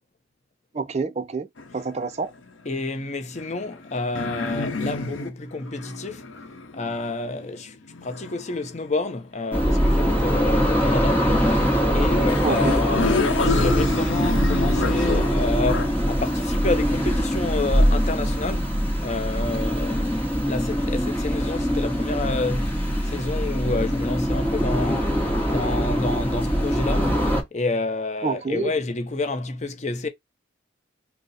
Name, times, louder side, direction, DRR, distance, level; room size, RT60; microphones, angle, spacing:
voice 1, 0.7-1.5 1.7-2.3 12.4-12.7 28.2-28.7, right 4 dB, 35° right, 0.4 m, -27 dB
sound 1, 1.6-2.5 3.3-8.7 9.6-11.3 12.0-12.1 12.3-15.9, left 3 dB, 75° left, 0.8 m, -30 dB
voice 2, 2.7-6.3 6.7-7.8 8.0-11.6 11.9-22.8 23.0-25.2 25.5-27.2 27.5-30.1, left 3 dB, 35° left, 0.6 m, -29 dB
sound 2, 9.5-27.4, equal, 10° left, 1.0 m, -22 dB
3.9 x 2.0 x 3.9 m
head